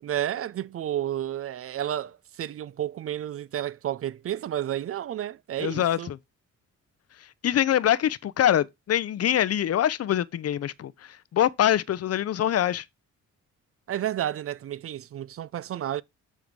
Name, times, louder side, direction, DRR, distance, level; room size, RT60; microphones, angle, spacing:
voice 1, 0.0-6.1 13.9-16.0, right 11 dB, 45° right, 0.4 m, -31 dB
voice 2, 5.6-6.2 7.4-10.9 11.3-12.8, left 11 dB, 50° left, 0.6 m, -24 dB
7.3 x 3.7 x 4.5 m
supercardioid pair, 60°, 31 cm